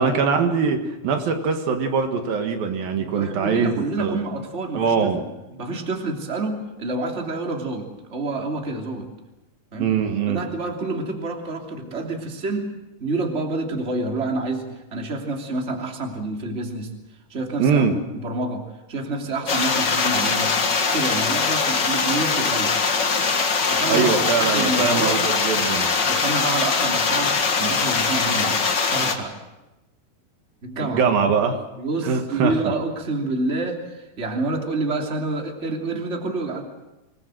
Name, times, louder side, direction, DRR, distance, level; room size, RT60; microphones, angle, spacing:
voice 1, 0.0-4.2 4.8-5.2 9.8-10.5 17.6-18.0 23.9-25.9 30.8-31.6 32.0-32.7, right 5 dB, 75° right, 5 dB, 3.5 m, -22 dB
voice 2, 3.0-5.1 5.5-9.1 9.7-9.9 10.3-12.7 13.0-16.9 17.3-17.8 18.1-20.5 20.9-22.8 23.7-25.2 26.0-29.4 30.6-31.0 31.8-36.6, right 2 dB, 20° right, 2 dB, 2.9 m, -28 dB
sound 1, 19.5-29.2, left 5 dB, 40° left, 1.7 m, -22 dB
26.0 x 20.0 x 7.8 m, 0.99 s
omnidirectional pair, 4.2 m